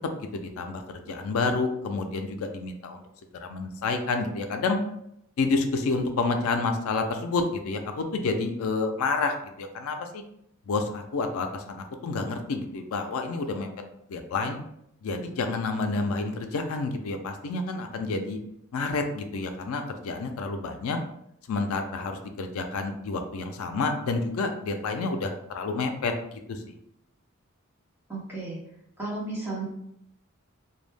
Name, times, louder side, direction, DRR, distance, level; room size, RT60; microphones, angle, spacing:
voice 1, 0.3-3.0 3.4-4.8 5.4-10.2 10.7-13.7 14.1-14.6 15.0-18.4 18.7-21.0 21.5-26.8, left 3 dB, 80° left, 5 dB, 0.4 m, -29 dB
voice 2, 28.1-28.6 29.0-29.7, right 2 dB, 10° right, -8 dB, 0.8 m, -33 dB
2.2 x 2.1 x 3.2 m, 0.76 s
head